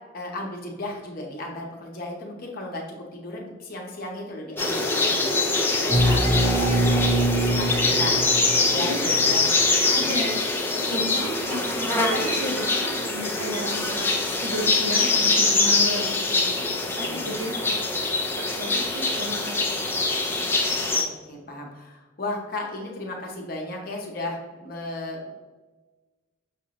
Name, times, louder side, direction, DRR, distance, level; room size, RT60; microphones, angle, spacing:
voice 1, 0.1-2.8 3.1-5.3 5.8-8.2 8.5-9.5 9.9-10.1 17.0-17.3 21.0-25.3, left 2 dB, 45° left, -1 dB, 0.8 m, -35 dB
sound 1, 4.6-21.0, left 3 dB, 10° left, 0.4 m, -24 dB
sound 2, 5.9-9.4, right 1 dB, 30° right, 0.9 m, -24 dB
voice 2, 9.9-10.4 10.9-14.1 14.4-16.5 16.9-17.8 18.3-20.1, equal, 85° right, 2 dB, 0.8 m, -33 dB
5.9 x 2.6 x 2.9 m, 1.3 s
head